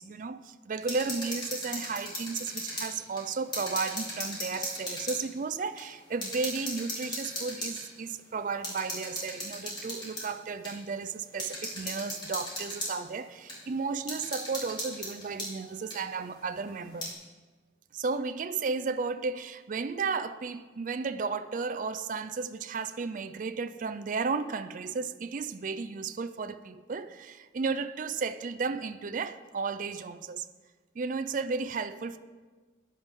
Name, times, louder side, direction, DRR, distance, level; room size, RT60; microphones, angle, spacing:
voice 1, 0.0-17.1 17.9-30.5 31.0-32.2, right 4 dB, 45° right, 0.4 m, -34 dB
sound 1, 0.8-2.9 3.2-5.2 5.8-5.9 6.2-7.8 8.6-10.3 10.6-10.7 11.4-12.9 13.5-13.6 14.1-15.5 15.9-16.0 16.8-17.1, left 1 dB, 25° left, 3.8 m, -37 dB
15.5 x 10.5 x 3.7 m
head